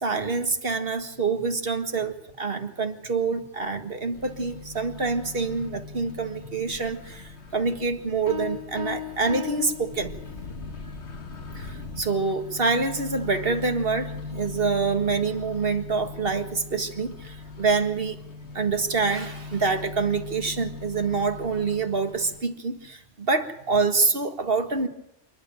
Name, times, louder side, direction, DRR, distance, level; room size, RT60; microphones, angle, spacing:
voice 1, 0.0-10.2 11.6-18.2 18.5-24.9, right 4 dB, 55° right, 7 dB, 2.0 m, -26 dB
Microwave oven, 4.1-22.4, left 4 dB, 70° left, 1.7 m, -40 dB
sound 1, 8.3-10.7, left 7 dB, 40° left, 3.8 m, -36 dB
27.5 x 11.5 x 9.2 m, 0.81 s
omnidirectional pair, 1.2 m